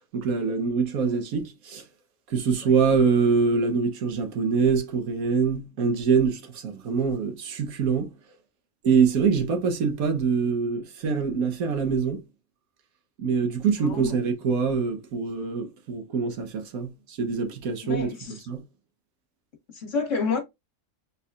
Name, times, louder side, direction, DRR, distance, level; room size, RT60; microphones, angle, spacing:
voice 1, 0.1-1.8 2.3-8.1 8.8-12.2 13.2-18.1 18.5-18.6, right 5 dB, 85° right, 1.5 m, -24 dB
voice 2, 13.8-14.1 17.8-18.4 19.7-20.4, left 5 dB, 60° left, 2.0 m, -29 dB
4.2 x 4.0 x 2.4 m
omnidirectional pair, 1.5 m